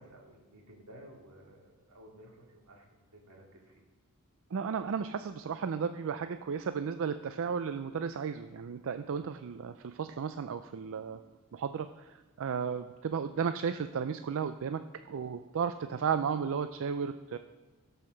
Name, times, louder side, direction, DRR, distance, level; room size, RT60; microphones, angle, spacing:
voice 1, 0.0-3.8, right 1 dB, 85° right, -1 dB, 2.6 m, -54 dB
voice 2, 4.5-11.2 11.5-17.4, right 6 dB, 60° right, 10 dB, 0.4 m, -34 dB
17.0 x 5.7 x 6.4 m, 1.3 s
head